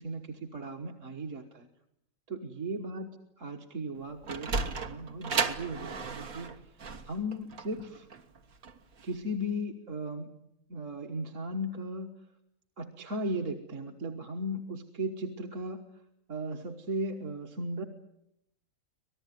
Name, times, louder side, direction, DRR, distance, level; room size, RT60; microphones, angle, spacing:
voice 1, 0.0-1.7 2.3-3.1 3.4-8.1 9.0-10.3 10.7-12.1 12.8-16.0 16.3-17.8, equal, 60° right, 3 dB, 1.8 m, -36 dB
Sliding door, 4.0-9.1, right 4 dB, 80° right, 1.9 m, -34 dB
25.5 x 19.0 x 9.3 m, 0.79 s
omnidirectional pair, 1.5 m